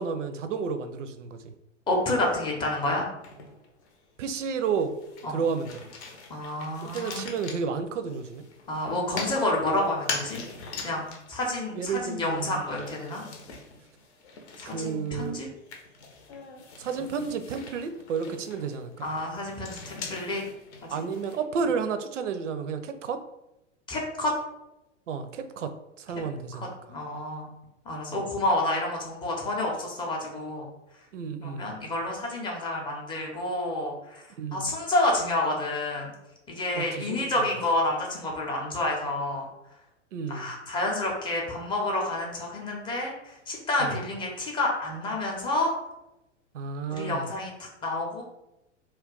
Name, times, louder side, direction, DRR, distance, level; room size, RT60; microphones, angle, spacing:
voice 1, 0.0-1.5 4.2-4.9 5.3-5.8 6.8-8.4 11.7-12.6 14.7-15.4 16.8-19.1 20.9-23.2 25.1-26.7 28.1-28.3 31.1-31.7 34.4-34.7 36.7-37.5 40.1-40.5 43.8-44.1 46.5-47.3, right 5 dB, 75° right, 9 dB, 0.5 m, -31 dB
voice 2, 1.9-3.1 5.2-5.4 6.3-7.3 8.7-10.4 10.8-13.2 14.6-15.5 17.0-17.1 19.0-20.4 20.8-21.0 23.9-24.3 26.5-27.5 27.9-30.7 31.4-34.2 34.5-36.1 36.5-39.5 40.3-45.7 46.9-48.2, left 2 dB, 15° left, -1 dB, 0.5 m, -29 dB
Toy-Wooden-Blocks Child, 3.2-3.9 4.3-21.4, left 4 dB, 60° left, 0.7 m, -42 dB
2.3 x 2.2 x 3.7 m, 0.91 s
figure-of-eight pair, 100°, 37 cm